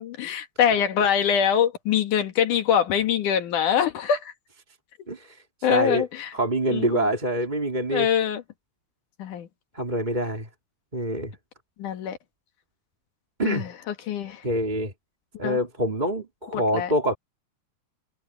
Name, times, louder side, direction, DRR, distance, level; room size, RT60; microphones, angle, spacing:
voice 1, 0.0-4.3 5.6-6.3 6.7-7.0 7.9-8.4 9.2-9.5 11.8-12.2 13.4-13.7 14.1-14.4 15.4-15.6 16.5-16.9, left 8 dB, 80° left, 3.2 m, -24 dB
voice 2, 5.1-6.0 6.3-8.1 9.7-10.5 10.9-11.3 13.4-13.7 14.4-14.9 15.4-17.2, right 1 dB, 15° right, 3.5 m, -26 dB
omnidirectional pair, 3.6 m